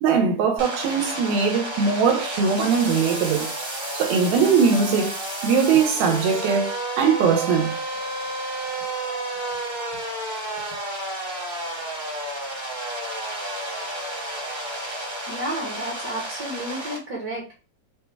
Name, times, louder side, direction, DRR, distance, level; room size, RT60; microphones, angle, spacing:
voice 1, 0.0-3.5 3.9-7.8, right 6 dB, 85° right, 2.8 m, -21 dB
sound 1, 0.6-17.0, right 1 dB, 35° right, 0.8 m, -31 dB
voice 2, 15.3-17.6, right 1 dB, 60° right, 0.9 m, -32 dB
6.8 x 2.3 x 3.3 m
omnidirectional pair, 4.1 m